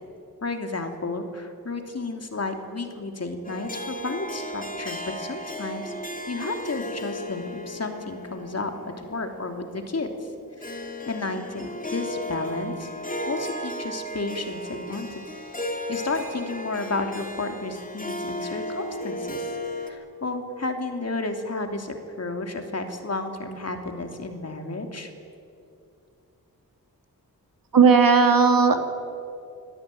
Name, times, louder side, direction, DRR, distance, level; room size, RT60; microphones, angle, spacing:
voice 1, 0.4-5.9 6.3-10.1 10.6-10.8 11.1-12.9 13.3-15.2 15.9-19.6 19.9-25.1, left 3 dB, 45° left, 5 dB, 3.1 m, -32 dB
Harp, 3.4-19.9, left 1 dB, 25° left, 3.2 m, -35 dB
voice 2, 27.7-28.8, right 5 dB, 70° right, 6 dB, 2.5 m, -16 dB
26.0 x 16.5 x 9.3 m, 2.6 s
cardioid pair, 60°, 36 cm